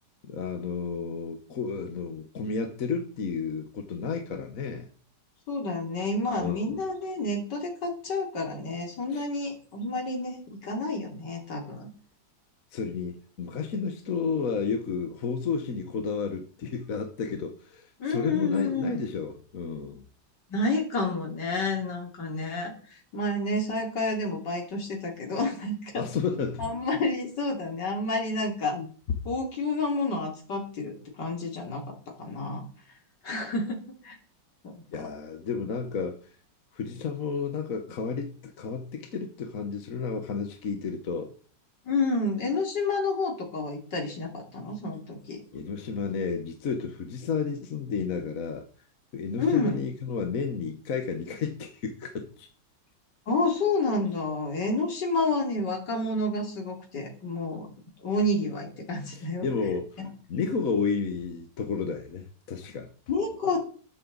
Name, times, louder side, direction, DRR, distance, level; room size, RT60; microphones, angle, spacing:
voice 1, 0.2-4.9 6.4-6.8 9.1-9.3 12.7-20.0 25.9-26.7 28.7-28.9 34.9-36.2 36.7-41.3 45.5-48.6 49.1-52.5 59.1-59.9 60.3-62.9, left 5 dB, 55° left, 1.5 m, -32 dB
voice 2, 5.5-11.9 18.0-19.1 20.5-26.0 26.6-28.8 29.2-31.8 32.2-32.6 33.2-33.8 34.0-34.2 34.6-35.1 41.8-45.4 49.4-49.8 53.3-57.7 58.0-59.5 60.0-60.1 63.1-63.6, left 2 dB, 70° left, 3.5 m, -29 dB
13.0 x 12.0 x 4.0 m
omnidirectional pair, 1.9 m